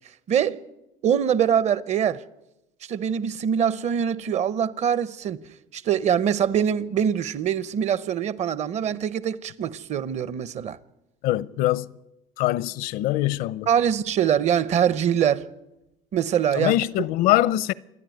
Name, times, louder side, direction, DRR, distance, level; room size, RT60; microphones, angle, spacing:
voice 1, 1.0-2.2 2.9-5.4 5.7-10.8 13.7-15.5 16.1-16.7, right 8 dB, 50° right, 0.9 m, -23 dB
voice 2, 11.2-11.9 12.4-13.7 16.5-17.7, left 15 dB, 75° left, 0.6 m, -23 dB
27.5 x 10.5 x 9.4 m
cardioid pair, 110°, 15 cm